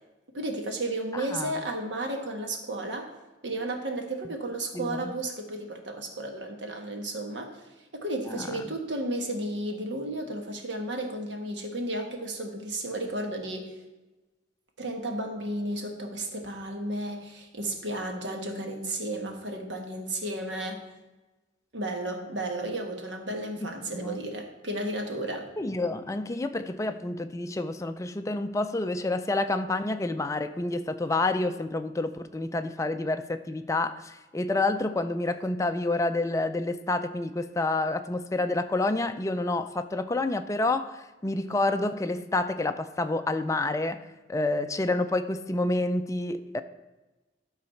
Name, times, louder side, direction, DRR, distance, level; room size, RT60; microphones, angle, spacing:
voice 1, 0.3-3.1 3.4-7.5 7.9-13.7 14.8-20.8 21.7-25.5, right 1 dB, 80° right, 1.5 m, -33 dB
voice 2, 1.1-1.6 4.7-5.1 8.3-8.6 23.6-24.2 25.6-44.0 44.3-46.6, left 2 dB, 15° left, 0.4 m, -29 dB
12.0 x 4.0 x 5.7 m
head